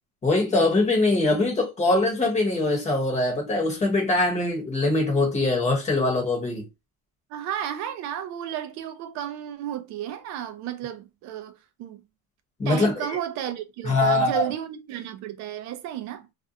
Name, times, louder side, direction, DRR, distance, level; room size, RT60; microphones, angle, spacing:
voice 1, 0.2-6.7 12.6-13.1 13.8-14.5, left 2 dB, 15° left, 0.9 m, -22 dB
voice 2, 7.3-12.0 12.6-16.3, right 11 dB, 40° right, 0.4 m, -33 dB
2.5 x 2.2 x 2.6 m
cardioid pair, 155°, 49 cm